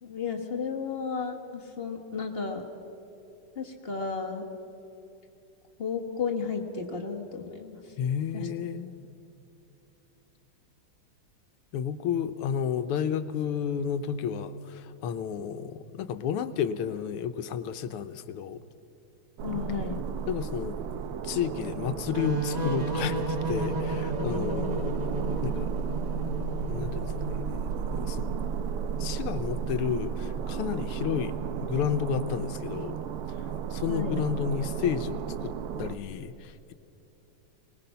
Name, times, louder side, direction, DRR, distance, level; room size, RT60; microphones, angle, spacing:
voice 1, 0.0-2.6 3.5-4.4 5.8-7.8 8.3-8.5 19.4-20.0 24.1-24.7 33.9-34.2, left 5 dB, 30° left, 3 dB, 1.5 m, -33 dB
voice 2, 8.0-9.0 11.7-18.6 20.3-20.8 21.2-24.9 25.4-25.7 26.7-27.4 27.9-28.3 29.0-31.3 31.6-33.0 33.7-35.5 35.8-36.7, left 8 dB, 85° left, 11 dB, 1.7 m, -31 dB
sound 1, 19.4-36.0, right 7 dB, 85° right, 1.7 m, -33 dB
sound 2, 22.1-27.6, right 1 dB, 30° right, 0.7 m, -33 dB
24.5 x 19.5 x 5.7 m, 2.9 s
omnidirectional pair, 2.4 m